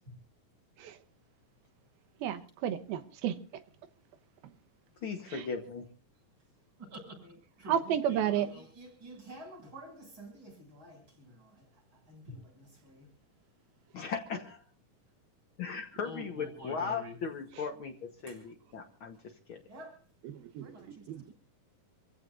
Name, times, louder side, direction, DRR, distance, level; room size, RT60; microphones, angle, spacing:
voice 1, 2.2-3.4 5.3-5.5 7.7-8.5 20.2-21.3, right 10 dB, 85° right, 3.0 m, -32 dB
voice 2, 5.0-5.8 13.9-14.6 15.6-19.6, left 5 dB, 75° left, 1.1 m, -38 dB
voice 3, 6.8-11.7 12.1-13.1 16.0-17.2 18.3-18.4 19.7-20.0 20.6-21.1, equal, 30° right, 7.8 m, -48 dB
27.5 x 16.0 x 2.6 m
omnidirectional pair, 4.2 m